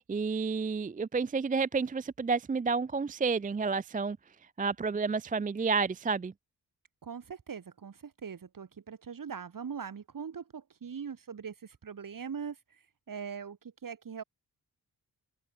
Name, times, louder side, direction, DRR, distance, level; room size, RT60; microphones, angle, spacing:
voice 1, 0.0-4.2 4.6-6.3, right 4 dB, 20° right, 0.4 m, -30 dB
voice 2, 7.0-12.6 13.1-13.6 13.8-14.2, right 6 dB, 55° right, 3.3 m, -41 dB
wide cardioid pair, 140°, 39 cm